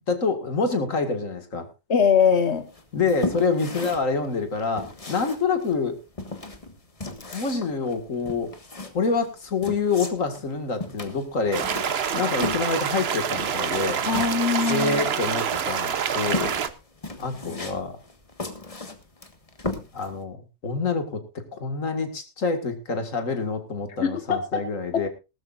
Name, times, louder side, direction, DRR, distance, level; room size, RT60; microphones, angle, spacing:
voice 1, 0.1-1.7 2.9-6.0 7.3-8.5 8.9-11.7 12.1-14.0 14.7-16.6 17.2-18.0 19.9-21.2 21.5-25.1, left 4 dB, 90° left, 6 dB, 2.4 m, -27 dB
voice 2, 1.9-2.6 14.1-15.0 24.0-24.6 24.9-25.1, left 6 dB, 60° left, 8 dB, 1.5 m, -22 dB
sound 1, 2.7-20.2, left 3 dB, 25° left, 1.6 m, -36 dB
sound 2, 11.5-16.7, right 7 dB, 55° right, 1.0 m, -27 dB
19.5 x 13.0 x 2.5 m, 0.28 s
omnidirectional pair, 1.3 m